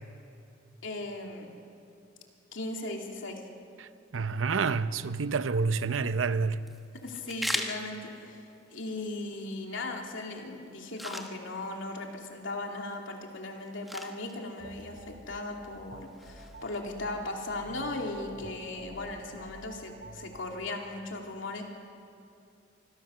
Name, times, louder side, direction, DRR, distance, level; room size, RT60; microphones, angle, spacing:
voice 1, 0.8-1.5 2.5-3.4 7.0-21.6, left 2 dB, 80° left, 2.7 m, -37 dB
voice 2, 3.8-6.6, right 4 dB, 85° right, 0.7 m, -29 dB
sound 1, 5.6-18.6, equal, ahead, 1.1 m, -43 dB
sound 2, 14.6-20.4, right 1 dB, 55° right, 2.1 m, -49 dB
25.0 x 16.0 x 6.9 m
head